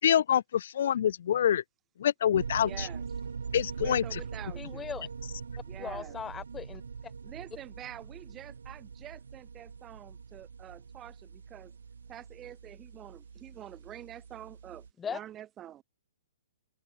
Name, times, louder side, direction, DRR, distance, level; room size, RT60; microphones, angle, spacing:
voice 1, 0.0-1.6 2.0-2.9 3.5-4.2, left 9 dB, 60° left, 0.4 m, -26 dB
sound 1, 2.3-14.9, right 5 dB, 75° right, 1.3 m, -42 dB
voice 2, 2.6-3.0 3.8-4.9 5.7-6.1 7.2-11.7 12.1-15.8, right 11 dB, 20° right, 5.0 m, -47 dB
voice 3, 4.6-5.1 5.8-6.8 15.0-15.2, left 7 dB, 15° left, 3.5 m, -38 dB
open air
hypercardioid pair, 130°, 0 cm